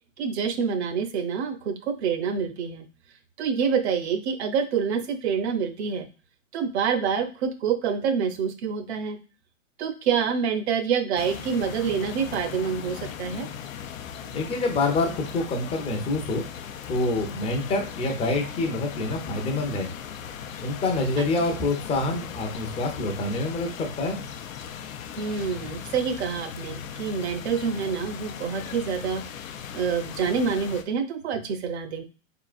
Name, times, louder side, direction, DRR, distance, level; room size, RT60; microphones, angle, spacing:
voice 1, 0.2-2.9 3.4-6.1 6.5-9.2 9.8-13.5 21.2-21.3 25.2-29.2 29.7-32.0, right 6 dB, 50° right, 9 dB, 0.9 m, -27 dB
sound 1, 11.2-30.8, left 8 dB, 70° left, 0.7 m, -38 dB
voice 2, 14.3-16.4 16.9-19.9 20.6-24.3, left 2 dB, 15° left, 3 dB, 0.7 m, -26 dB
4.1 x 3.8 x 2.4 m, 0.34 s
hypercardioid pair, 130°, 42 cm